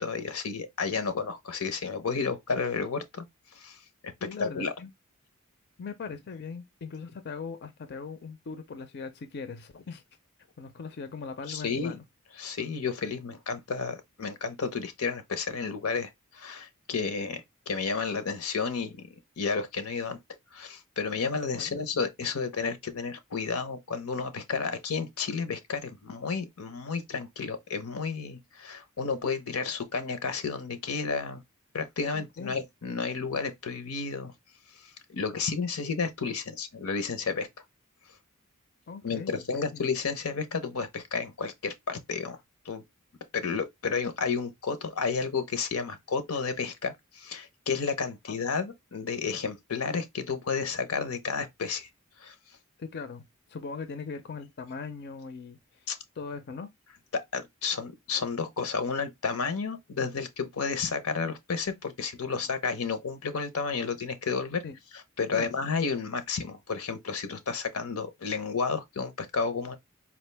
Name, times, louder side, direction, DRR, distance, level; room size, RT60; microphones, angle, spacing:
voice 1, 0.0-3.2 3.6-3.8 4.4-4.7 11.5-12.0 12.4-19.1 19.4-20.2 20.5-31.4 31.7-34.3 35.1-37.5 39.0-42.4 42.6-42.8 43.3-51.9 52.2-52.3 55.9-56.0 57.1-64.6 65.2-69.8, left 5 dB, 90° left, 0.8 m, -31 dB
voice 2, 4.2-4.9 5.8-10.0 10.6-12.0 21.5-22.0 32.1-32.6 38.9-39.8 52.8-55.9 56.2-56.7 62.3-62.4 64.6-64.8 65.3-65.5, left 5 dB, 50° left, 0.5 m, -40 dB
4.3 x 2.4 x 3.3 m
head